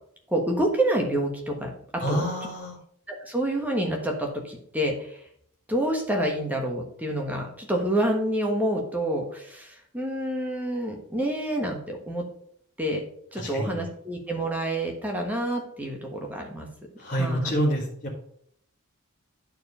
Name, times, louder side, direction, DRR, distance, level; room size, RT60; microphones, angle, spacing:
voice 1, 0.3-1.7 2.1-2.2 3.2-5.2 5.7-12.2 12.8-13.0 13.3-16.7 17.2-17.6, right 1 dB, 5° right, 1 dB, 1.3 m, -28 dB
voice 2, 2.0-2.8 13.3-13.9 17.0-18.2, equal, 35° left, -5 dB, 1.8 m, -28 dB
9.5 x 4.6 x 5.5 m, 0.66 s
head